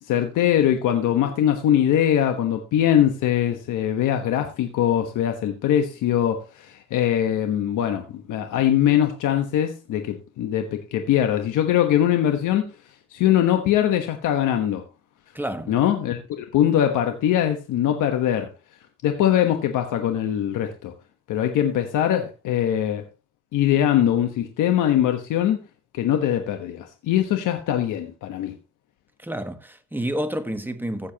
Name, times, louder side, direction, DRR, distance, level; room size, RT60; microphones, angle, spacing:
voice 1, 0.0-12.7 13.1-14.8 15.7-18.5 19.0-20.9 21.3-23.0 23.5-25.6 25.9-28.5, left 10 dB, 85° left, 1.3 m, -22 dB
voice 2, 15.3-15.8 29.2-31.1, right 1 dB, 5° right, 1.5 m, -29 dB
15.5 x 7.3 x 3.0 m
cardioid pair, 90°, 30 cm